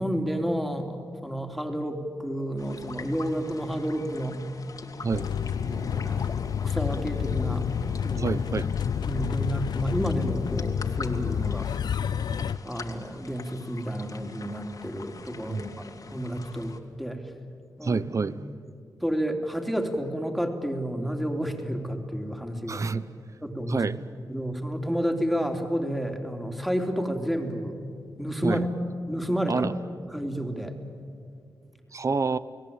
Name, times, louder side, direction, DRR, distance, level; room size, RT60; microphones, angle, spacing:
voice 1, 0.0-4.4 5.6-8.3 9.0-11.7 12.6-15.7 16.1-17.2 17.8-18.0 19.0-22.9 23.4-23.8 24.3-27.8 28.2-28.7 29.1-29.7 30.1-30.7, equal, ahead, 4 dB, 3.2 m, -30 dB
sound 1, 2.6-16.8, left 4 dB, 55° left, 2.2 m, -45 dB
sound 2, 5.1-12.6, left 8 dB, 75° left, 0.6 m, -29 dB
voice 2, 8.2-8.7 15.5-15.6 17.8-18.3 22.7-23.1 23.7-24.0 28.4-28.6 29.5-29.7 31.9-32.4, right 4 dB, 45° right, 16 dB, 0.9 m, -27 dB
30.0 x 18.5 x 8.8 m, 2.4 s
cardioid pair, 60°, 7 cm